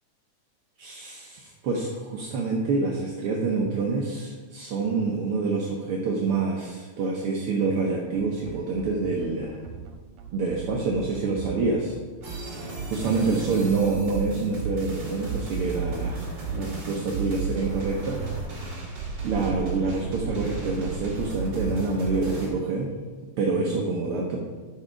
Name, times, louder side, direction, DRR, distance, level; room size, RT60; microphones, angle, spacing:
voice 1, 0.8-9.6 10.3-11.9 12.3-18.2 18.5-19.0 19.2-22.9 23.4-24.4, right 4 dB, 65° right, -1 dB, 1.4 m, -27 dB
sound 1, 8.1-21.8, right 7 dB, 85° right, 2.4 m, -40 dB
sound 2, 12.2-22.5, right 3 dB, 45° right, 3.1 m, -33 dB
9.9 x 5.7 x 5.1 m, 1.4 s
omnidirectional pair, 3.4 m